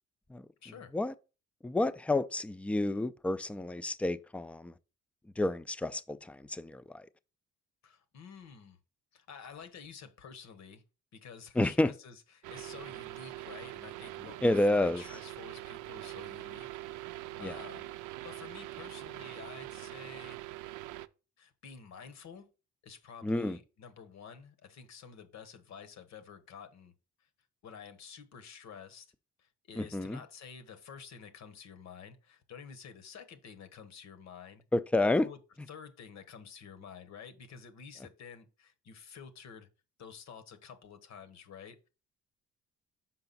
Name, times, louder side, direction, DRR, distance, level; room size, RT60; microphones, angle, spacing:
voice 1, 0.6-0.9 7.8-8.8 9.1-10.8 11.1-16.7 17.0-17.9 18.2-20.4 21.4-22.5 22.8-26.9 27.6-29.1 29.4-34.6 35.1-35.4 35.7-39.7 40.0-41.9, left 6 dB, 65° left, 1.1 m, -50 dB
voice 2, 1.6-4.7 5.4-7.1 11.6-11.9 14.4-15.0 17.4-17.6 23.2-23.6 29.8-30.2 34.7-35.3, left 2 dB, 5° left, 0.3 m, -30 dB
sound 1, 12.4-21.1, right 16 dB, 85° right, 0.5 m, -43 dB
5.9 x 4.9 x 4.0 m
cardioid pair, 90°, 30 cm